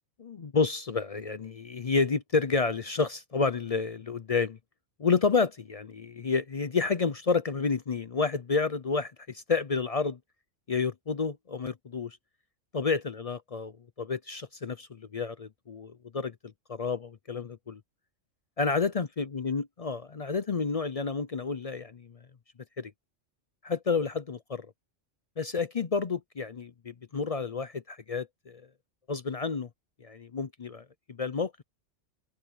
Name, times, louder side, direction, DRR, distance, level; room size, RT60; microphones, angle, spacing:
voice 1, 0.2-4.6 5.0-10.2 10.7-12.2 12.7-16.3 16.7-17.8 18.6-22.2 22.8-22.9 23.6-24.7 25.4-28.7 29.1-29.7 30.0-31.6, left 4 dB, 45° left, 0.5 m, -30 dB
open air
omnidirectional pair, 1.3 m